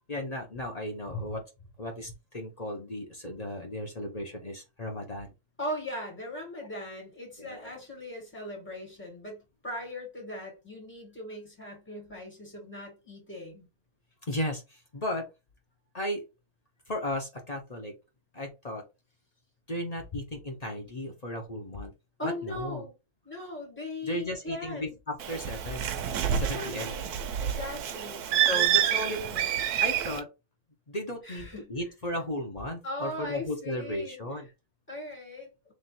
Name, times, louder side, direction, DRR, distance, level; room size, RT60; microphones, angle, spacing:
voice 1, 0.1-1.4 1.8-5.4 7.4-7.7 14.3-15.3 15.9-16.2 16.9-17.9 18.3-18.8 19.7-21.9 22.2-22.8 24.0-26.0 26.4-26.9 28.3-29.2 29.8-30.3 30.9-34.5, left 1 dB, 35° left, 0.6 m, -35 dB
voice 2, 5.6-13.7 22.2-22.9 23.2-24.9 26.3-27.1 27.4-29.5 31.2-31.7 32.8-34.2 34.9-35.5, left 1 dB, 5° left, 2.2 m, -39 dB
Bird, 25.2-30.2, right 10 dB, 85° right, 1.2 m, -28 dB
3.3 x 3.1 x 4.1 m
omnidirectional pair, 1.6 m